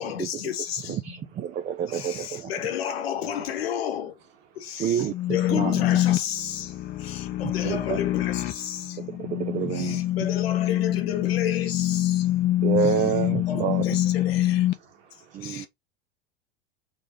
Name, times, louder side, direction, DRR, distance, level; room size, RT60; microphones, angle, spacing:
voice 1, 0.0-1.3 1.9-4.2 4.5-9.0 9.7-12.3 12.8-13.1 13.5-14.7 15.4-15.7, left 9 dB, 65° left, 1.1 m, -32 dB
voice 2, 1.0-2.5 4.8-5.1 5.5-5.8 7.6-8.0 9.0-10.0 12.6-13.9 15.3-15.7, right 8 dB, 25° right, 0.5 m, -28 dB
sound 1, 5.1-14.7, left 14 dB, 30° left, 0.6 m, -25 dB
voice 3, 6.9-7.4 9.7-10.1 12.2-12.7 14.7-15.7, right 7 dB, 55° right, 1.6 m, -56 dB
3.6 x 3.3 x 3.7 m
figure-of-eight pair, 90°, 33 cm